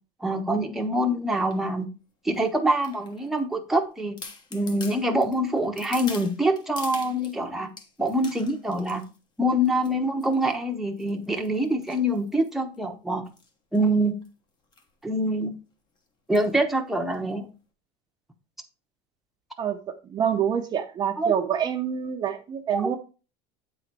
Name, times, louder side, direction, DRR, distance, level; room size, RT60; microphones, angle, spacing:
voice 1, 0.2-1.9 2.2-4.2 4.5-7.7 8.0-9.0 9.4-13.2 13.7-14.1 15.0-15.5 16.3-17.5 21.2-21.3 22.7-22.9, right 1 dB, ahead, 2 dB, 0.9 m, -25 dB
sound 1, 1.3-1.6 2.3-3.4 3.8-3.9 4.2-7.4 7.8-9.2 9.7-9.9 10.2-10.5 11.0-12.8 13.3-13.5 13.7-13.8 14.0-14.3 14.7-14.9 15.2-15.3 16.3-16.6 17.1-17.2, left 4 dB, 35° left, 1.3 m, -44 dB
voice 2, 19.6-23.0, right 8 dB, 30° right, 4 dB, 0.7 m, -27 dB
8.4 x 4.0 x 4.5 m, 0.33 s
supercardioid pair, 130°, 14 cm